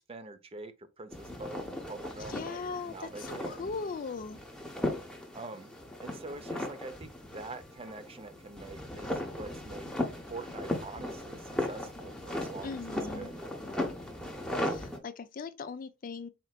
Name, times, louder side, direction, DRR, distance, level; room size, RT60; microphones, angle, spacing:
voice 1, 0.0-3.7 5.3-5.7 6.0-9.9 10.3-13.4, right 3 dB, 30° right, 0.5 m, -45 dB
sound 1, 1.1-15.0, left 1 dB, 5° left, 0.8 m, -37 dB
voice 2, 2.3-4.4 12.6-13.3 14.6-16.3, left 4 dB, 45° left, 0.4 m, -39 dB
4.3 x 3.8 x 2.2 m
head